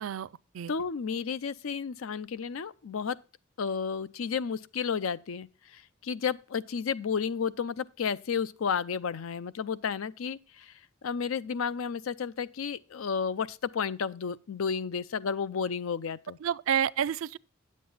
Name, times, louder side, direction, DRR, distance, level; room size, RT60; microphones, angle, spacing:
voice 1, 0.0-0.7 16.4-17.4, right 9 dB, 80° right, 0.4 m, -30 dB
voice 2, 0.7-3.2 3.6-10.7 11.0-16.4, left 6 dB, 85° left, 0.5 m, -32 dB
9.4 x 7.4 x 3.9 m
head